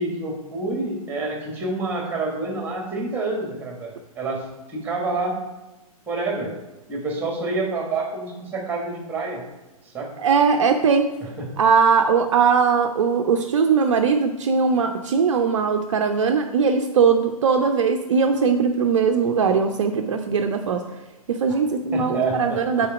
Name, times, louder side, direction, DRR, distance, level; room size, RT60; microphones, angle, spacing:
voice 1, 0.0-5.4 6.1-6.5 6.9-9.4 9.9-10.1 11.2-11.5 21.9-22.9, right 3 dB, 10° right, 1 dB, 1.7 m, -28 dB
voice 2, 10.2-11.1 11.6-20.8 21.3-22.9, right 5 dB, 55° right, 5 dB, 0.5 m, -20 dB
5.6 x 4.4 x 5.9 m, 1.1 s
figure-of-eight pair, 110°, 19 cm